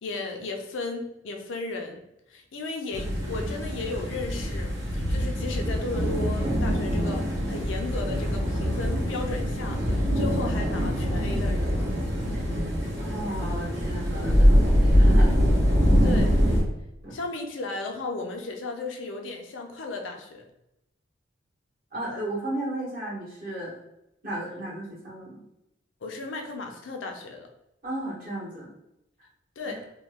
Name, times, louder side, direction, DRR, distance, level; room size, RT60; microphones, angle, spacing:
voice 1, 0.0-11.7 16.0-16.4 17.1-20.4 26.0-27.5 29.6-29.8, left 3 dB, 85° left, 3 dB, 0.6 m, -35 dB
sound 1, 2.9-16.6, equal, 65° right, 1.2 m, -23 dB
voice 2, 13.0-15.4 17.0-17.1 21.9-23.7 24.2-25.4 27.8-28.7 29.6-29.8, right 1 dB, 50° right, -6 dB, 1.4 m, -34 dB
3.0 x 2.3 x 3.4 m, 0.87 s
head